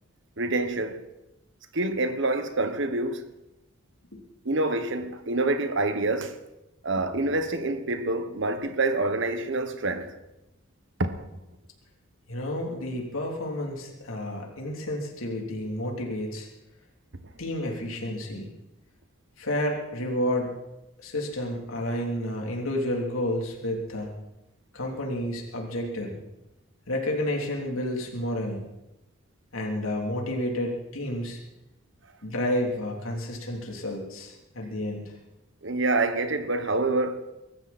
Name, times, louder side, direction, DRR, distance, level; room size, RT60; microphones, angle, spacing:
voice 1, 0.4-1.1 1.7-3.3 4.4-6.4 6.8-10.1 11.0-11.3 35.6-37.3, right 2 dB, 60° right, 1.3 m, -27 dB
voice 2, 12.3-16.5 17.4-18.5 19.4-20.5 21.0-24.2 24.7-26.2 26.9-28.6 29.5-31.4 32.2-35.1, left 1 dB, 85° left, 3.4 m, -30 dB
23.5 x 13.5 x 4.4 m
head